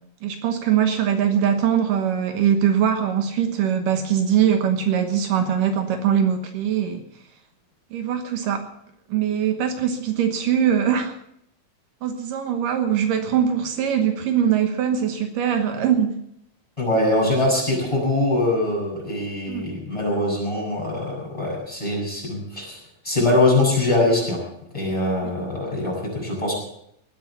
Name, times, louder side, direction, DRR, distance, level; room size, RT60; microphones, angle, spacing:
voice 1, 0.2-7.0 7.9-8.7 9.1-11.2 12.0-16.2 19.5-19.6 25.2-25.3, right 8 dB, 75° right, 6 dB, 2.8 m, -22 dB
voice 2, 16.8-22.8 23.0-24.4 24.7-26.5, left 2 dB, 10° left, -3 dB, 7.3 m, -22 dB
20.0 x 8.9 x 7.2 m, 0.72 s
omnidirectional pair, 3.9 m